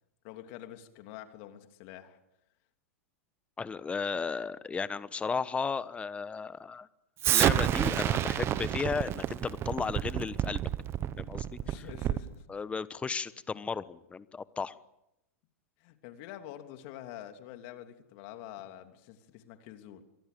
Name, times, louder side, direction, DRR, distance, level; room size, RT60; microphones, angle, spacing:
voice 1, 0.2-2.2 11.6-12.5 15.8-20.0, left 12 dB, 50° left, 6 dB, 3.0 m, -47 dB
voice 2, 3.6-6.9 7.2-10.6 11.2-11.5 12.5-14.8, left 5 dB, 15° left, 16 dB, 1.1 m, -34 dB
Explosion, 7.2-12.3, right 11 dB, 30° right, 1.2 m, -29 dB
27.5 x 23.5 x 6.9 m, 0.87 s
hypercardioid pair, 110°, 8 cm